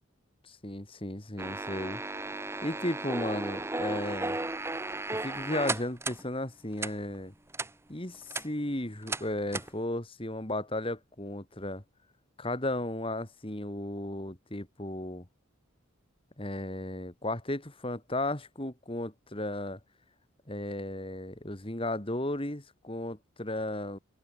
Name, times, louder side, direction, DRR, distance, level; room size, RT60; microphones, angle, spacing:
voice 1, 0.4-2.0 2.6-4.4 5.1-7.3 7.9-11.8 12.4-15.3 16.4-19.8 20.5-24.0, left 1 dB, 25° left, 2.4 m, -35 dB
sound 1, 1.4-6.2 6.8-6.9 7.5-7.7 8.1-8.5 9.1-9.2 9.5-9.7, right 2 dB, 10° right, 0.9 m, -34 dB
head